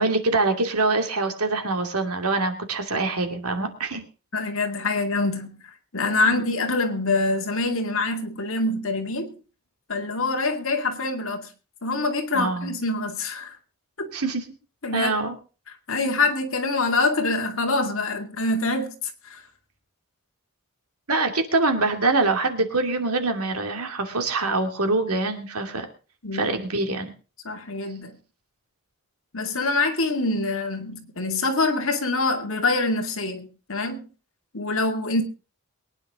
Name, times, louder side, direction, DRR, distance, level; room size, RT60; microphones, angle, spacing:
voice 1, 0.0-4.0 6.2-6.5 12.3-12.7 14.1-14.4 14.9-15.3 21.1-25.9 26.3-27.1, right 3 dB, 80° right, 2.6 m, -24 dB
voice 2, 4.3-5.6 5.9-9.4 9.9-11.5 11.8-13.5 14.0-14.1 14.8-15.1 15.7-19.4 26.2-26.5 27.4-28.2 29.3-34.0 34.5-35.2, left 2 dB, 60° left, 2.3 m, -25 dB
23.0 x 9.8 x 3.7 m
head